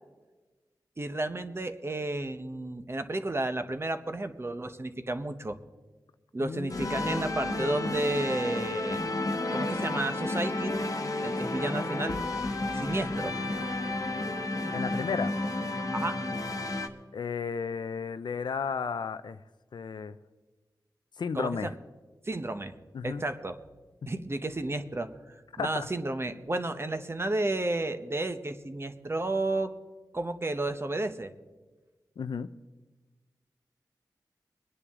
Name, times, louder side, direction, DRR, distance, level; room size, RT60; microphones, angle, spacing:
voice 1, 1.0-5.6 6.3-9.0 9.5-10.7 11.2-12.2 12.7-13.3 15.9-16.2 21.3-21.7 22.2-22.7 23.0-23.6 24.1-29.7 30.1-31.3, right 2 dB, 35° right, 8 dB, 1.0 m, -32 dB
voice 2, 6.4-7.0 14.7-15.3 17.1-19.4 19.7-20.2 21.2-21.7 22.9-23.2 24.0-24.1 25.6-25.9 32.2-32.5, left 6 dB, 85° left, 12 dB, 0.5 m, -33 dB
sound 1, 6.7-16.9, left 2 dB, 50° left, 1.1 m, -31 dB
23.0 x 10.0 x 3.7 m, 1.2 s
wide cardioid pair, 70°, 7 cm